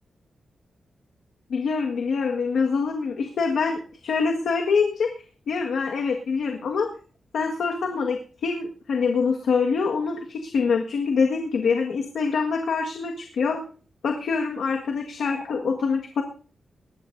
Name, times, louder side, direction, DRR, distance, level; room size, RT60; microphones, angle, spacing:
voice 1, 1.5-5.1 5.5-6.9 7.3-13.6 14.0-16.2, left 5 dB, 90° left, 2 dB, 1.6 m, -25 dB
19.5 x 15.5 x 2.7 m, 0.40 s
wide cardioid pair, 150°, 0 cm